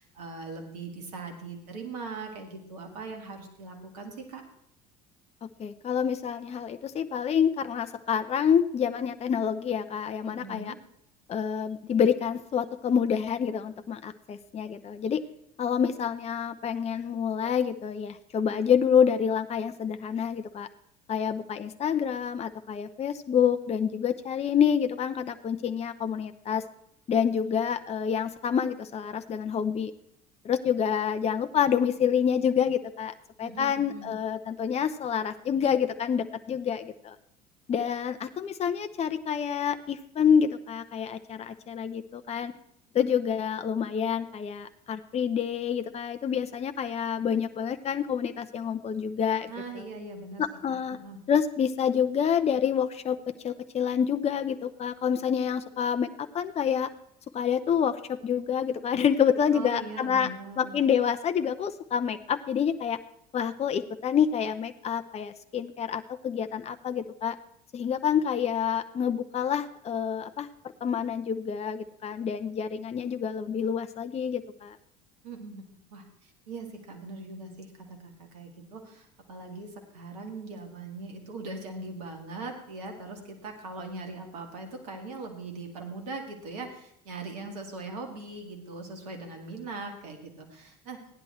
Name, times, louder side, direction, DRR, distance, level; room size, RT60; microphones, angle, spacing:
voice 1, 0.0-4.4 10.2-10.8 33.4-34.1 49.5-51.2 59.5-60.8 75.2-75.6 75.9-91.0, right 3 dB, 75° right, 4 dB, 2.3 m, -40 dB
voice 2, 5.4-10.7 11.3-15.2 15.6-20.7 21.1-26.6 27.1-29.9 30.4-37.2 37.7-42.5 42.9-49.9 50.4-51.0 51.3-56.9 57.3-60.3 60.6-63.0 63.3-67.4 67.7-70.5 70.8-74.8, left 8 dB, 30° left, 9 dB, 0.7 m, -27 dB
15.5 x 10.5 x 4.4 m, 0.75 s
figure-of-eight pair, 65°, 20 cm